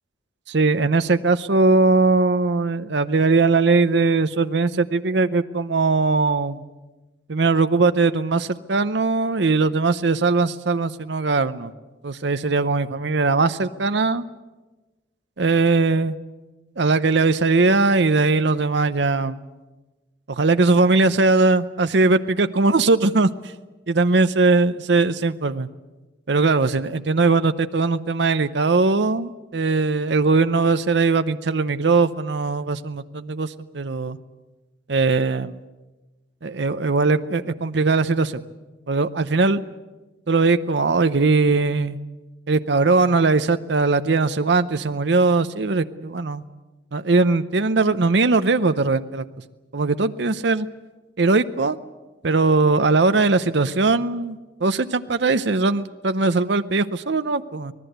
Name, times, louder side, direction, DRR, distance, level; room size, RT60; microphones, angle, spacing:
voice 1, 0.5-6.6 7.3-11.7 12.0-14.2 15.4-16.2 16.8-19.4 20.3-23.3 23.9-25.7 26.3-34.2 34.9-35.5 36.4-38.4 38.9-39.6 40.3-42.0 42.5-46.4 46.9-49.3 49.7-50.7 51.2-51.8 52.2-57.7, right 3 dB, 60° right, 10 dB, 0.7 m, -20 dB
25.5 x 19.0 x 8.0 m, 1.2 s
head